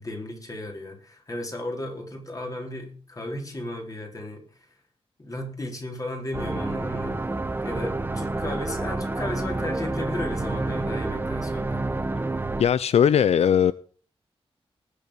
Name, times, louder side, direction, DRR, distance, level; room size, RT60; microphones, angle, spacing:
voice 1, 0.0-4.4 5.2-7.2 7.6-11.8, left 1 dB, 35° left, 3.9 m, -34 dB
sound 1, 6.3-12.6, right 2 dB, 20° right, 1.1 m, -29 dB
voice 2, 12.6-13.7, left 8 dB, 80° left, 0.5 m, -19 dB
19.5 x 7.0 x 5.0 m
wide cardioid pair, 120°, 11 cm